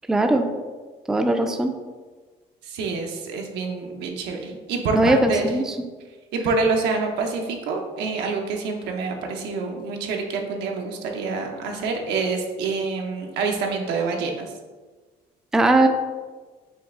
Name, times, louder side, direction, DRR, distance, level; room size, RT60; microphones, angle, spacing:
voice 1, 0.1-0.5 1.1-1.7 4.9-5.7 15.5-15.9, right 2 dB, 5° right, 5 dB, 0.3 m, -19 dB
voice 2, 2.6-5.5 6.3-14.5, right 4 dB, 85° right, 2 dB, 0.7 m, -27 dB
5.3 x 2.4 x 3.6 m, 1.4 s
cardioid pair, 110°, 17 cm